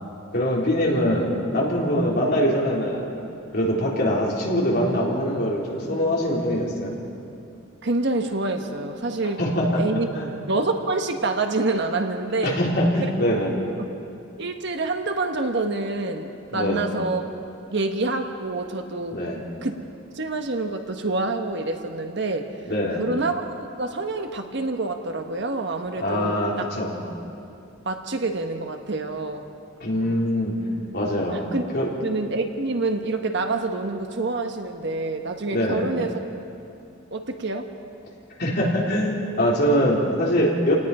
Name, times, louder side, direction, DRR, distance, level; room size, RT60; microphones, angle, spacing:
voice 1, 0.3-3.1 3.5-6.9 9.4-9.8 10.1-10.3 12.4-13.5 16.5-16.9 19.1-19.4 22.7-23.0 26.0-27.0 29.8-30.5 30.9-31.4 31.7-31.9 35.5-35.8 38.4-40.7, equal, 55° left, -4 dB, 4.1 m, -23 dB
voice 2, 7.8-9.4 9.8-10.1 10.5-12.6 13.0-13.1 13.8-13.9 14.4-17.2 17.7-19.2 19.6-19.8 20.1-22.6 23.0-26.4 27.8-29.4 31.3-31.6 32.0-36.2 37.1-37.7, right 2 dB, 60° right, 5 dB, 1.4 m, -27 dB
29.0 x 18.5 x 5.0 m, 2.6 s
head